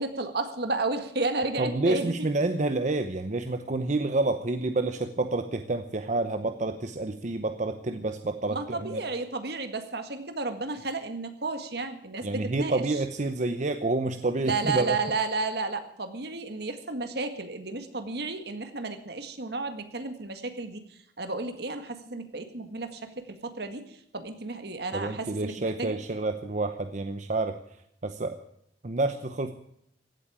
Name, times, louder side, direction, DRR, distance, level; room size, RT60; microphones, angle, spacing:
voice 1, 0.0-2.1 8.5-12.8 14.5-26.0, right 3 dB, 65° right, 8 dB, 1.8 m, -32 dB
voice 2, 1.6-9.0 12.2-15.0 24.9-27.6 28.0-28.4 28.8-29.5, right 2 dB, 45° right, 8 dB, 0.8 m, -28 dB
16.5 x 8.5 x 8.9 m, 0.73 s
head